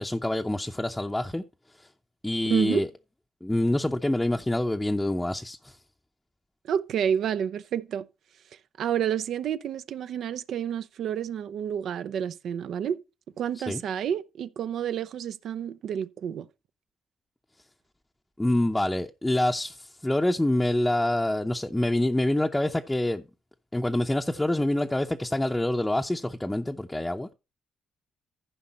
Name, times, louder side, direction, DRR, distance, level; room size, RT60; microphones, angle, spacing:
voice 1, 0.0-1.4 2.2-2.9 3.4-5.8 13.7-13.8 18.4-23.2 23.7-27.3, left 1 dB, 10° left, 0.7 m, -26 dB
voice 2, 2.5-2.9 6.6-8.1 8.8-13.0 13.4-16.5, right 9 dB, 70° right, 0.6 m, -29 dB
14.5 x 5.3 x 4.2 m
cardioid pair, 90°, 0 cm